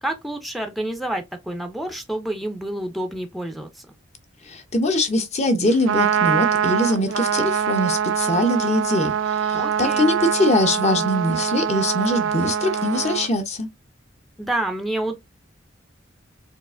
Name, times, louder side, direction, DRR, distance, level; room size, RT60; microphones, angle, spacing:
voice 1, 0.0-3.9 9.5-10.1 14.4-15.1, right 1 dB, ahead, 0.5 m, -28 dB
voice 2, 4.4-13.7, left 1 dB, 35° left, 0.8 m, -22 dB
Trumpet, 5.7-13.3, right 8 dB, 80° right, 0.3 m, -23 dB
4.5 x 2.5 x 2.5 m
head